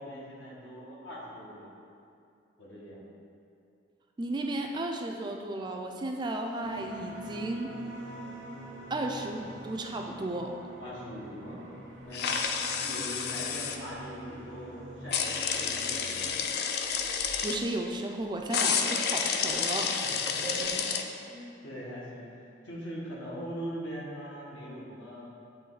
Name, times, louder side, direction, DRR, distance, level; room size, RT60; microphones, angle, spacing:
voice 1, 0.0-1.7 2.6-3.0 10.8-12.3 12.8-16.6 20.0-20.9 21.2-22.3 22.6-25.3, equal, 85° left, -6 dB, 1.4 m, -41 dB
voice 2, 4.2-7.7 8.9-10.5 17.4-19.9, right 1 dB, 25° right, 2 dB, 0.3 m, -34 dB
sound 1, 6.6-16.3, right 1 dB, 80° right, 0.9 m, -45 dB
sound 2, 12.1-13.8 15.1-17.6 18.5-21.0, left 6 dB, 60° left, 0.4 m, -30 dB
8.2 x 3.1 x 3.9 m, 2.5 s
head